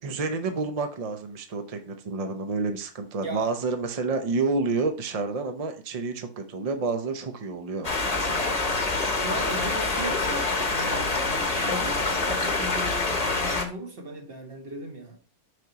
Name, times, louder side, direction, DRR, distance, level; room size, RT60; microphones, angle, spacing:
voice 1, 0.0-8.5, right 4 dB, 65° right, 0.3 m, -29 dB
sound 1, 7.8-13.6, left 3 dB, 30° left, 0.9 m, -26 dB
voice 2, 8.9-15.2, right 1 dB, 40° right, 1.3 m, -37 dB
6.2 x 5.2 x 2.9 m
omnidirectional pair, 1.6 m